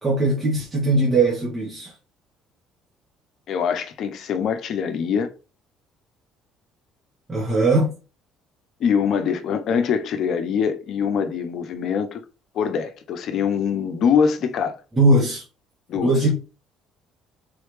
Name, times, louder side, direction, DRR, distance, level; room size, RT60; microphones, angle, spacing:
voice 1, 0.0-1.9 7.3-7.9 15.0-15.4 16.0-16.3, right 2 dB, 30° right, 1.5 m, -19 dB
voice 2, 3.5-5.3 8.8-12.2 12.5-14.8 15.9-16.2, left 7 dB, 60° left, 0.7 m, -23 dB
3.9 x 3.1 x 3.2 m
hypercardioid pair, 60°, 0 cm